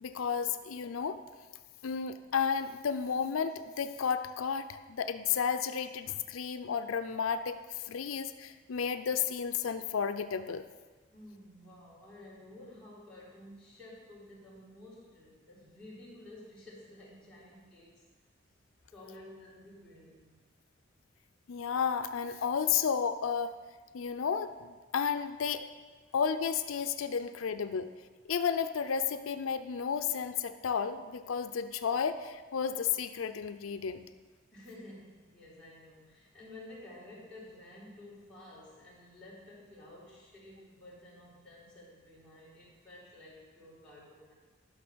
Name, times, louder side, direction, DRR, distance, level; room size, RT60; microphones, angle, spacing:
voice 1, 0.0-1.2 1.8-10.6 21.5-23.5 23.9-25.7 26.1-27.9 28.3-34.0, left 7 dB, 90° left, 10 dB, 0.5 m, -32 dB
voice 2, 11.1-18.1 18.9-20.4 26.0-26.2 27.2-27.3 34.5-44.3, left 1 dB, 5° left, -10 dB, 3.6 m, -52 dB
12.0 x 5.8 x 6.1 m, 1.4 s
head